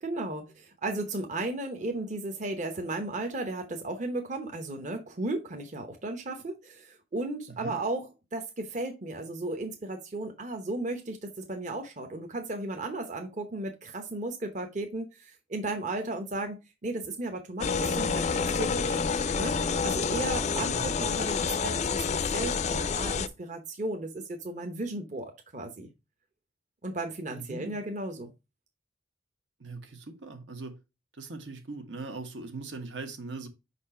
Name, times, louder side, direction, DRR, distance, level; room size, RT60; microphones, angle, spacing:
voice 1, 0.0-19.0 19.4-19.5 19.8-25.9 26.8-28.3, right 2 dB, 40° right, 0.8 m, -35 dB
sound 1, 17.6-23.3, left 5 dB, 40° left, 0.4 m, -28 dB
voice 2, 20.5-20.9 27.3-27.8 29.6-30.8 31.1-33.5, right 3 dB, 75° right, 1.4 m, -40 dB
5.5 x 4.3 x 4.2 m
head